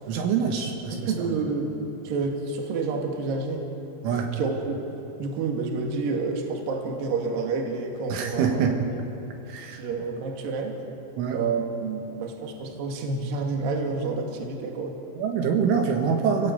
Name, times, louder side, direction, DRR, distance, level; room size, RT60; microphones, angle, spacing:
voice 1, 0.1-1.1 4.0-4.3 8.1-8.8 9.5-9.8 11.2-11.4 15.2-16.5, right 6 dB, 75° right, 2 dB, 4.0 m, -25 dB
voice 2, 0.9-1.8 2.0-3.7 4.3-9.0 9.7-10.8 11.3-15.0, right 4 dB, 50° right, 2 dB, 3.5 m, -29 dB
28.5 x 18.5 x 8.0 m, 2.9 s
omnidirectional pair, 5.8 m